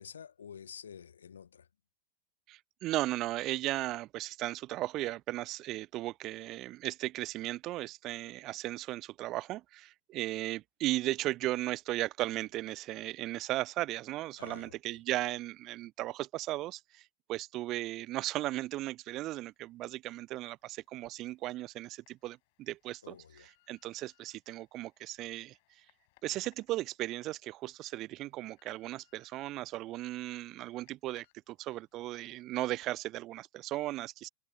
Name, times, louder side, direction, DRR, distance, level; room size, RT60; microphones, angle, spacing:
voice 1, 0.0-1.7 14.4-15.0 23.0-23.5, left 7 dB, 70° left, 1.1 m, -49 dB
voice 2, 2.5-25.6 26.2-34.3, right 16 dB, 35° right, 0.6 m, -36 dB
sound 1, 21.0-21.1 21.8-22.1 22.7-24.3 25.0-27.3 27.7-27.8 28.3-29.6 30.0-30.9 31.1-31.3 31.7-31.8 32.2-32.5 32.8-32.9, left 24 dB, 50° left, 7.0 m, -69 dB
figure-of-eight pair, 90°, 0 cm